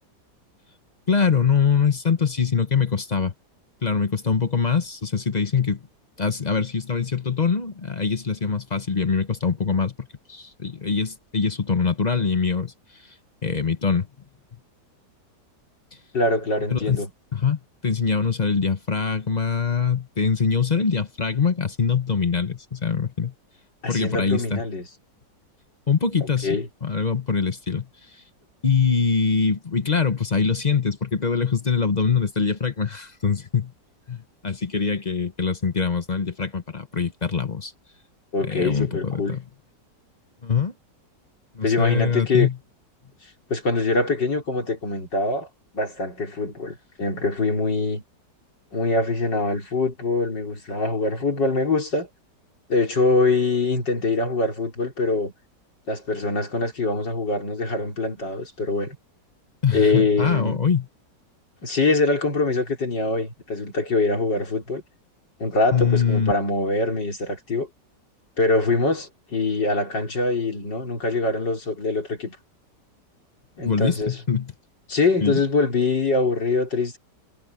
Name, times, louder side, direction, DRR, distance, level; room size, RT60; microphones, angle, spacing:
voice 1, 1.1-3.3 3.8-5.8 6.2-9.9 10.3-12.7 13.4-14.1 16.7-17.0 17.3-23.3 23.9-24.6 25.9-27.9 28.6-33.7 34.1-37.7 38.4-39.4 40.4-40.7 41.5-42.6 59.6-60.8 65.7-66.3 73.6-74.5 75.2-75.4, left 5 dB, 30° left, 0.9 m, -23 dB
voice 2, 16.1-17.1 23.8-24.9 26.4-26.7 38.3-39.4 41.6-42.5 43.5-45.5 45.7-48.0 48.7-52.1 52.7-55.3 55.9-59.0 59.7-60.6 61.6-64.8 65.4-67.7 68.4-72.4 73.6-74.2 74.9-77.0, left 3 dB, 90° left, 5.2 m, -23 dB
omnidirectional pair, 1.9 m